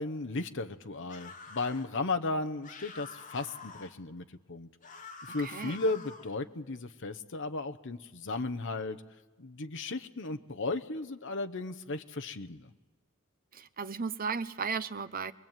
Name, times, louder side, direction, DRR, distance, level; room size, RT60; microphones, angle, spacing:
voice 1, 0.0-4.7 5.2-9.0 9.4-12.7, left 3 dB, 60° left, 9 dB, 1.0 m, -35 dB
sound 1, 1.1-1.9 2.6-3.9 4.8-6.3, left 4 dB, 40° left, 2.7 m, -47 dB
voice 2, 5.4-5.8 13.5-15.3, right 5 dB, 45° right, 12 dB, 1.0 m, -35 dB
25.0 x 21.5 x 9.1 m, 1.2 s
head